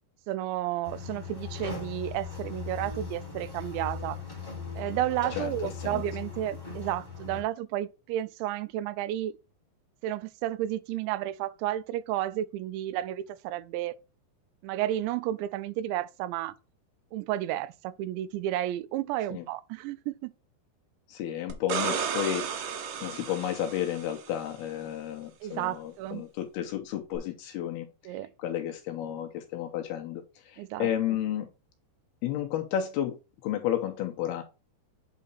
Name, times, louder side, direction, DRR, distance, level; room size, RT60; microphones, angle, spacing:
voice 1, 0.3-4.2 4.8-9.3 10.0-14.0 14.6-16.5 17.1-20.3 25.4-26.2 28.1-28.3 30.6-30.9, right 13 dB, 85° right, 2.9 m, -32 dB
sound 1, 0.8-7.4, left 5 dB, 5° left, 2.0 m, -38 dB
voice 2, 21.1-22.5 23.0-27.9 28.4-31.5 32.2-34.4, left 11 dB, 75° left, 2.5 m, -32 dB
sound 2, 21.5-24.3 27.1-27.2, right 7 dB, 70° right, 2.0 m, -33 dB
8.6 x 4.1 x 4.1 m
omnidirectional pair, 5.1 m